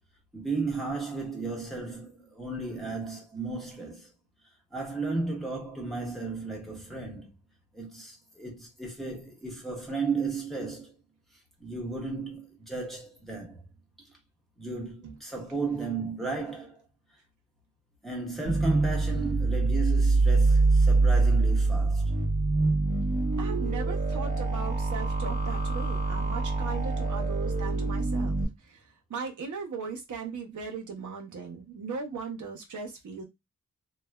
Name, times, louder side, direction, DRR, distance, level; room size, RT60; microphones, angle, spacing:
voice 1, 0.3-4.1 4.7-7.3 7.7-10.9 11.6-13.6 14.0-14.1 14.6-16.8 18.0-22.1, right 3 dB, ahead, 1.0 m, -34 dB
sound 1, 18.5-28.5, right 3 dB, 25° right, 0.8 m, -25 dB
voice 2, 23.4-33.2, right 5 dB, 70° right, 0.7 m, -38 dB
3.1 x 2.2 x 2.2 m
wide cardioid pair, 125°, 32 cm